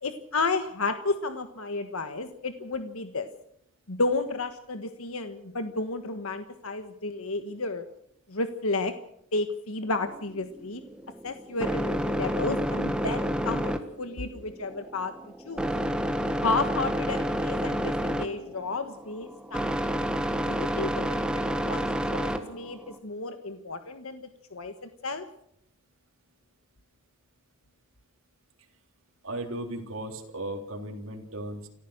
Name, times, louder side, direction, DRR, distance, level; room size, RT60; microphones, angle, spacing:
voice 1, 0.0-3.3 3.9-7.8 8.3-8.9 9.3-10.8 11.2-15.7 16.4-19.9 20.4-21.9 22.1-24.2 24.5-25.2, left 3 dB, 80° left, 8 dB, 1.4 m, -32 dB
sound 1, 10.0-23.0, equal, 5° right, 1.5 m, -30 dB
voice 2, 29.2-31.7, right 1 dB, 65° right, 2 dB, 3.7 m, -36 dB
28.5 x 14.5 x 6.6 m, 0.72 s
head